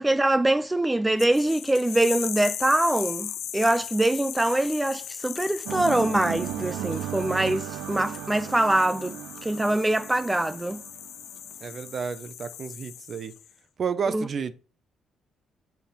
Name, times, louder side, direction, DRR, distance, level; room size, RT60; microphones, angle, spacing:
voice 1, 0.0-10.8 14.1-14.3, right 1 dB, 10° right, 0.4 m, -24 dB
sound 1, 1.2-13.5, left 10 dB, 75° left, 0.4 m, -38 dB
sound 2, 5.7-11.6, right 13 dB, 90° right, 0.3 m, -36 dB
voice 2, 11.6-13.3 13.8-14.5, right 6 dB, 50° right, 0.8 m, -31 dB
7.1 x 5.9 x 4.3 m
cardioid pair, 90°, 0 cm